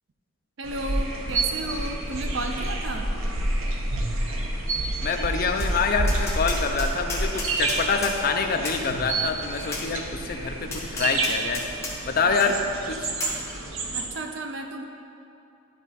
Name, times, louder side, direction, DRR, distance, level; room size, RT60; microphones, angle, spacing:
voice 1, 0.6-3.1 13.9-14.9, right 2 dB, 60° right, 4 dB, 0.5 m, -33 dB
sound 1, 0.6-14.1, right 2 dB, 85° right, 0.8 m, -29 dB
voice 2, 5.0-11.6 12.1-12.6 12.9-13.2, left 5 dB, 45° left, 5 dB, 0.5 m, -26 dB
Tap, 5.6-5.7 6.1-8.2 8.6-8.8 9.7-9.9 10.7-11.9 12.4-12.5 13.2-13.4, left 3 dB, 15° left, 1.2 m, -33 dB
12.0 x 4.1 x 4.1 m, 2.7 s
head